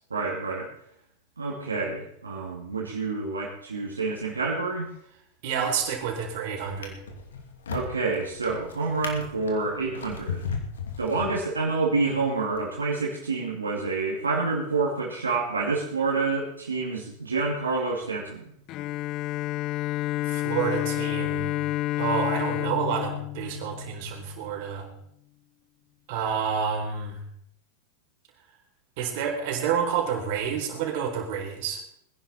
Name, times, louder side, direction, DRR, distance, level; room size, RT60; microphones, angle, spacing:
voice 1, 0.1-0.7 1.4-4.9 7.7-10.5 11.0-18.5, right 3 dB, 90° right, -3 dB, 2.6 m, -28 dB
voice 2, 5.4-7.0 20.3-21.5 22.0-24.9 26.1-27.2 29.0-31.8, right 7 dB, 55° right, 1 dB, 4.2 m, -29 dB
Drawer open or close, 5.8-6.1 6.6-11.8 12.5-12.7, left 6 dB, 80° left, 2.6 m, -37 dB
Bowed string instrument, 18.7-24.4, left 16 dB, 45° left, 0.5 m, -29 dB
21.5 x 10.5 x 4.4 m, 0.71 s
hypercardioid pair, 95°, 0 cm